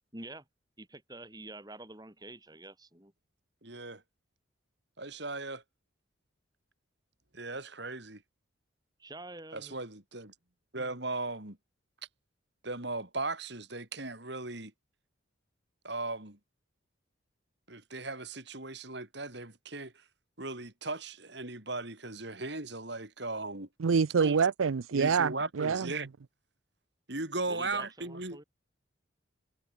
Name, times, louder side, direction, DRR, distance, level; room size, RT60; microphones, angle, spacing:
voice 1, 0.1-0.4 0.8-3.1 9.0-9.8 27.5-28.4, right 2 dB, 20° right, 5.8 m, -47 dB
voice 2, 3.6-4.0 5.0-5.6 7.3-8.2 9.5-10.3 10.7-11.6 12.6-14.7 15.8-16.4 17.7-20.0 20.4-23.7 24.2-24.4 24.9-26.1 27.1-28.4, right 2 dB, 55° right, 3.7 m, -37 dB
voice 3, 23.8-25.9, right 5 dB, 85° right, 0.5 m, -26 dB
head